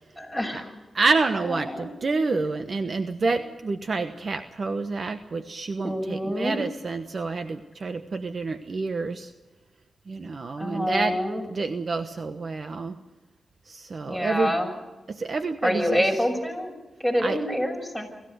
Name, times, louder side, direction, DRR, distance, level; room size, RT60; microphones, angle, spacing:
voice 1, 0.2-0.7 1.6-1.9 5.8-6.6 10.6-11.4 14.1-14.7 15.6-16.7 17.0-18.1, equal, 10° right, 3 dB, 6.6 m, -26 dB
voice 2, 0.9-9.3 10.1-11.2 11.5-13.0 13.6-14.6 15.1-16.2 17.2-17.4, right 3 dB, 50° right, 8 dB, 1.1 m, -28 dB
25.0 x 15.0 x 8.1 m, 1.1 s
cardioid pair, 70°, 0 cm